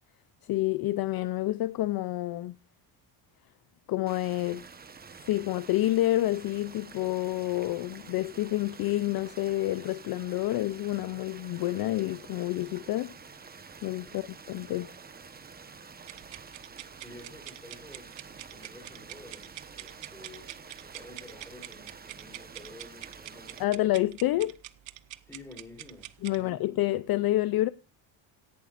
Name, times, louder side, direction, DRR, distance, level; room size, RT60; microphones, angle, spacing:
voice 1, 0.5-2.5 3.9-4.6 5.2-13.1 13.8-14.9 23.6-24.6 26.2-27.7, left 16 dB, 55° left, 0.5 m, -28 dB
sound 1, 4.1-23.6, right 5 dB, 20° right, 1.0 m, -49 dB
sound 2, 16.0-26.4, right 15 dB, 75° right, 0.9 m, -46 dB
voice 2, 17.0-18.2 18.5-20.5 20.8-24.0 25.3-26.1 26.4-26.6, left 2 dB, 5° left, 4.0 m, -50 dB
17.0 x 11.0 x 2.5 m
cardioid pair, 175°, 46 cm